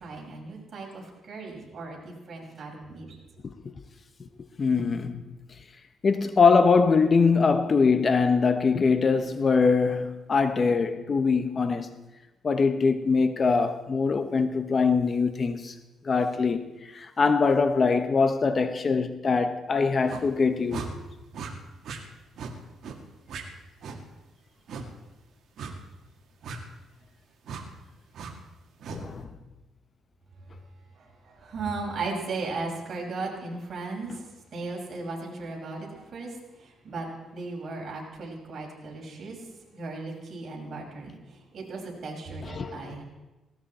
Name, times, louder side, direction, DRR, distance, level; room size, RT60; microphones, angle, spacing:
voice 1, 0.0-3.2 31.0-37.1 37.3-39.4 39.7-43.0, right 3 dB, 50° right, 6.0 m, -36 dB
voice 2, 4.6-5.2 6.0-12.0 12.4-15.7 16.0-16.6 16.9-20.9 28.9-29.3 42.4-43.0, left 4 dB, 40° left, 1.1 m, -23 dB
sound 1, 20.1-20.3 20.7-20.9 21.3-21.5 21.8-22.0 22.4-22.5 22.8-23.0 23.3-23.4 23.8-24.0 24.7-24.9 25.6-25.8 26.4-26.6 27.4-27.6 28.1-28.3 28.8-29.0, right 5 dB, 65° right, 2.0 m, -37 dB
18.5 x 17.5 x 4.4 m
cardioid pair, 90°, 0 cm